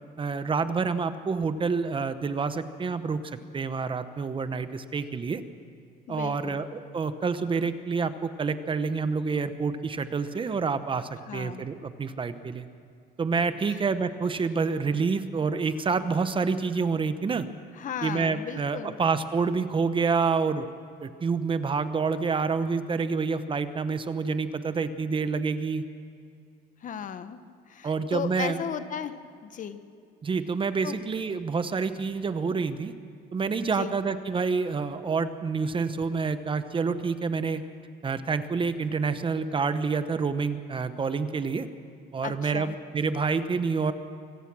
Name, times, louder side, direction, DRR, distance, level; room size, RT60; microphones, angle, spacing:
voice 1, 0.2-5.4 6.1-12.6 13.2-17.5 18.0-20.7 21.0-25.8 27.8-28.6 30.2-32.9 33.3-37.6 38.0-41.7 42.1-43.9, right 5 dB, 30° right, 11 dB, 1.1 m, -28 dB
voice 2, 6.1-6.7 11.3-11.6 13.7-13.8 17.8-18.9 26.8-27.4 27.7-29.2 29.4-29.8 30.8-30.9 33.7-33.9 42.2-42.8, left 8 dB, 50° left, 11 dB, 1.2 m, -35 dB
25.0 x 17.5 x 6.2 m, 2.5 s
cardioid pair, 110°, 17 cm